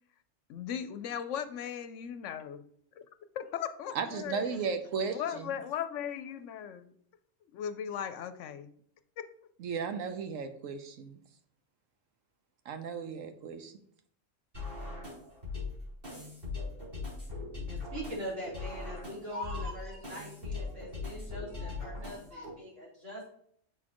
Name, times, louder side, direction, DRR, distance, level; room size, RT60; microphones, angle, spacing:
voice 1, 0.5-2.6 3.0-3.1 3.3-4.6 5.1-6.9 7.5-8.7 9.2-9.3, left 9 dB, 75° left, 10 dB, 0.9 m, -37 dB
voice 2, 3.9-5.5 9.6-11.2 12.6-13.7, right 5 dB, 90° right, 8 dB, 1.1 m, -35 dB
sound 1, 14.5-22.5, left 3 dB, 45° right, 3.8 m, -40 dB
voice 3, 17.7-23.3, equal, 75° right, -7 dB, 3.9 m, -42 dB
7.8 x 6.3 x 3.0 m, 0.65 s
omnidirectional pair, 1.3 m